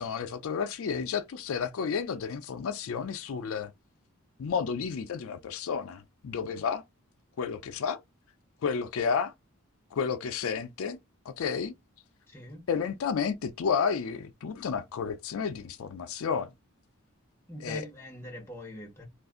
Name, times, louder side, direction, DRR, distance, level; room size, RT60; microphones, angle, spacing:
voice 1, 0.0-3.7 4.4-6.8 7.4-8.0 8.6-9.3 9.9-11.0 11.3-11.7 12.7-16.5 17.6-17.8, left 6 dB, 70° left, 0.4 m, -31 dB
voice 2, 12.3-12.7 17.5-19.0, equal, 10° left, 0.8 m, -42 dB
2.5 x 2.3 x 3.6 m
head